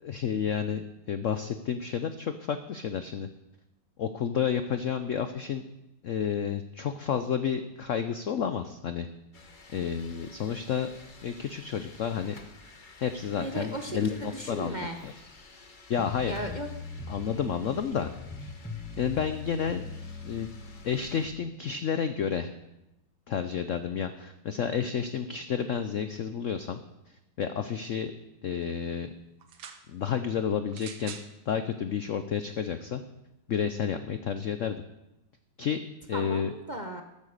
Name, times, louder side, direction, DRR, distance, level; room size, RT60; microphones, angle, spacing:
voice 1, 0.0-3.3 4.0-5.6 6.0-9.1 9.7-10.9 11.2-12.4 13.0-15.1 15.9-16.3 17.1-18.1 18.4-18.5 19.0-19.8 20.2-20.5 20.8-22.5 23.3-26.8 27.4-28.1 28.4-29.1 29.9-31.2 31.5-33.0 33.5-34.8 35.6-35.8 36.1-36.5, left 7 dB, 75° left, 10 dB, 0.7 m, -30 dB
sound 1, 9.3-21.3, left 3 dB, 30° left, 1.0 m, -52 dB
voice 2, 13.4-15.0 16.3-16.7 36.1-37.0, right 1 dB, 35° right, 4 dB, 0.8 m, -36 dB
sound 2, 16.0-21.3, left 4 dB, 5° left, 1.1 m, -41 dB
sound 3, 29.4-29.8 30.7-31.3 32.2-32.3, right 7 dB, 85° right, 1.9 m, -44 dB
14.0 x 8.9 x 6.6 m, 0.92 s
omnidirectional pair, 2.1 m